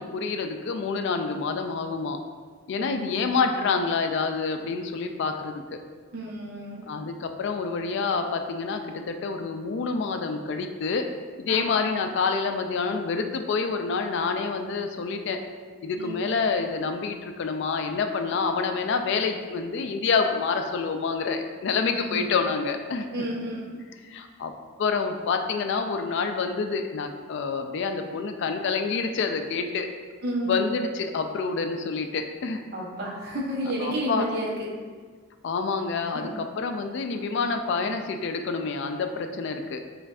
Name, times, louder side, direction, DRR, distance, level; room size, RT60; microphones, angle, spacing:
voice 1, 0.0-2.2 2.7-5.6 6.9-11.1 11.4-15.4 15.8-23.0 24.1-24.5 24.8-29.9 30.5-32.6 33.8-34.3 35.4-39.8, left 4 dB, 60° left, 6 dB, 0.3 m, -27 dB
voice 2, 2.8-3.5 6.1-6.8 11.5-11.7 16.0-16.2 21.9-22.3 23.1-23.7 30.2-30.6 32.7-34.5 36.1-36.3, right 1 dB, 50° right, -4 dB, 0.9 m, -31 dB
7.3 x 2.5 x 2.4 m, 1.5 s
head